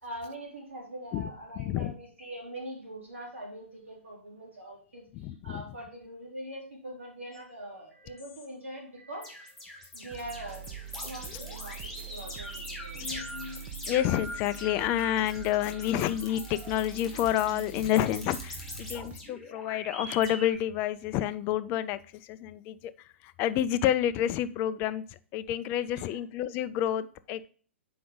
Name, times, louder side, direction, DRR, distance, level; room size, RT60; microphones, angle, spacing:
voice 1, 0.0-9.3 9.9-10.7 11.0-13.2 25.9-26.1, right 1 dB, 70° right, -3 dB, 3.8 m, -43 dB
voice 2, 1.6-1.9 5.1-5.6 13.9-22.9 23.2-25.0 25.3-27.5, left 11 dB, 25° left, 15 dB, 0.4 m, -29 dB
sound 1, 7.3-7.4 7.9-8.4 9.0-20.6, left 1 dB, ahead, 1.7 m, -42 dB
sound 2, 10.1-19.2, right 10 dB, 25° right, 0.9 m, -45 dB
7.5 x 5.1 x 3.9 m, 0.43 s
figure-of-eight pair, 115°, 7 cm